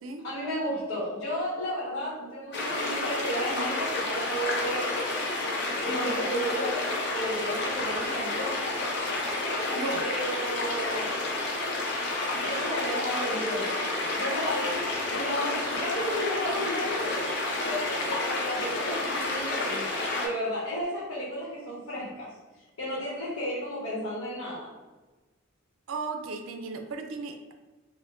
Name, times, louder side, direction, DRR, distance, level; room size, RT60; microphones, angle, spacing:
voice 1, 0.2-4.9 5.8-8.6 9.8-11.2 12.3-13.8 14.1-17.1 17.7-19.9 20.2-22.3 22.8-24.7, equal, 80° left, -7 dB, 1.1 m, -33 dB
sound 1, 2.5-20.3, left 2 dB, 60° left, 0.6 m, -30 dB
voice 2, 25.9-27.5, right 4 dB, 80° right, 5 dB, 0.4 m, -35 dB
4.2 x 2.1 x 2.5 m, 1.2 s
head